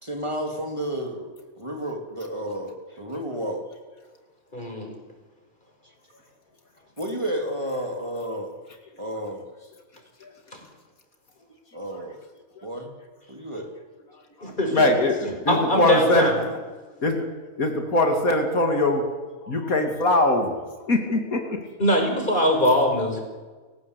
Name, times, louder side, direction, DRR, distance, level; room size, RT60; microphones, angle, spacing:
voice 1, 0.0-3.6 7.0-8.5 9.0-9.4 11.7-12.1 12.6-12.9 13.3-13.7 15.9-16.2, equal, 20° right, 2 dB, 3.3 m, -31 dB
voice 2, 4.5-4.9 10.5-10.6 14.4-14.8 15.5-16.4 21.8-23.2, equal, 35° left, 2 dB, 6.0 m, -22 dB
voice 3, 14.4-16.3 17.0-17.3 17.6-19.1 19.4-20.6 20.9-21.6, left 1 dB, 80° left, 4 dB, 3.0 m, -22 dB
30.0 x 17.0 x 8.3 m, 1.3 s
omnidirectional pair, 1.5 m